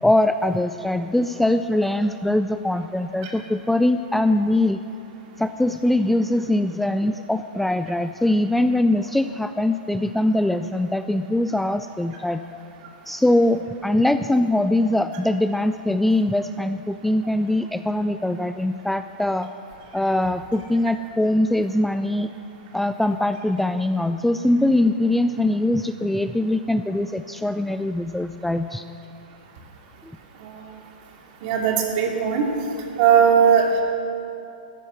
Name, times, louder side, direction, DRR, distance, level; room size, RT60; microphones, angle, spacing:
voice 1, 0.0-4.8 5.4-12.4 13.1-19.5 19.9-22.3 22.7-28.8 30.0-30.1, left 1 dB, 5° left, 10 dB, 0.3 m, -22 dB
voice 2, 31.4-32.4 33.0-33.8, right 7 dB, 50° right, 1 dB, 2.6 m, -18 dB
13.5 x 9.9 x 7.8 m, 2.7 s
hypercardioid pair, 110°, 5 cm